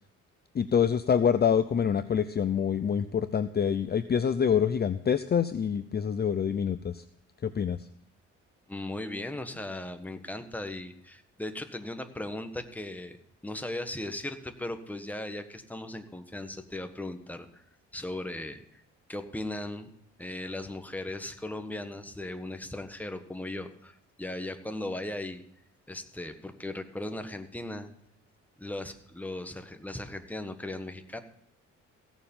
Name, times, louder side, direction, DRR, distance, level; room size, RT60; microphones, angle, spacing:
voice 1, 0.5-7.0 7.4-7.8, left 7 dB, 35° left, 12 dB, 0.6 m, -26 dB
voice 2, 8.7-13.2 13.4-17.6 17.9-18.8 19.1-19.9 20.2-25.4 25.9-27.9 28.6-31.2, left 1 dB, 5° left, 7 dB, 1.5 m, -37 dB
16.5 x 7.1 x 5.5 m, 0.72 s
cardioid pair, 90°, 30 cm